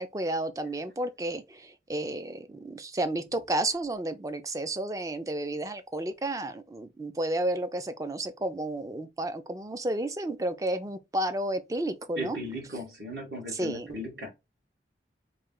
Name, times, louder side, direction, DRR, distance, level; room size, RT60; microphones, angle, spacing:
voice 1, 0.0-12.4 13.5-13.9, right 1 dB, 20° right, 0.4 m, -32 dB
voice 2, 12.2-14.3, equal, 65° right, 1.6 m, -37 dB
3.2 x 2.8 x 3.7 m
head